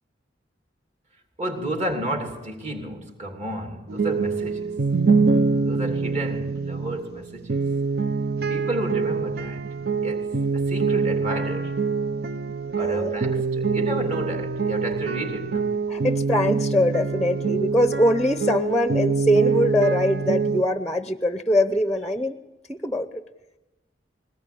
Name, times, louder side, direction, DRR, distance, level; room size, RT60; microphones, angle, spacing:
voice 1, 1.4-4.9 5.6-7.6 8.5-9.6 10.0-11.8 12.8-15.7, right 1 dB, 40° right, 3.0 m, -32 dB
sound 1, 3.9-20.6, right 4 dB, 55° right, 0.7 m, -25 dB
voice 2, 12.8-13.2 15.9-22.4 22.7-23.1, left 1 dB, 5° left, 0.8 m, -22 dB
21.5 x 19.5 x 8.6 m
head